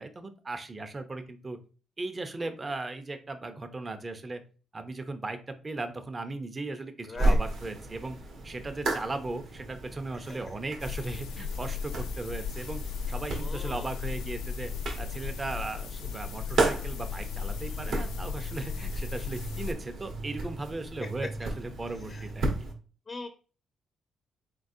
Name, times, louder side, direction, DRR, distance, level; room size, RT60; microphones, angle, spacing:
voice 1, 0.0-1.6 2.0-4.4 4.7-8.2 8.4-14.7 15.0-22.5, right 2 dB, 30° right, 9 dB, 0.6 m, -37 dB
voice 2, 2.4-2.7 7.1-7.4 10.3-10.5 13.4-13.9 22.1-22.3 23.1-23.3, left 3 dB, 35° left, 5 dB, 0.6 m, -41 dB
sound 1, 7.2-22.7, right 2 dB, 70° right, 1.4 m, -34 dB
sound 2, 10.8-19.7, left 6 dB, 85° left, 0.5 m, -36 dB
4.0 x 3.8 x 2.7 m, 0.36 s
cardioid pair, 90°, 0 cm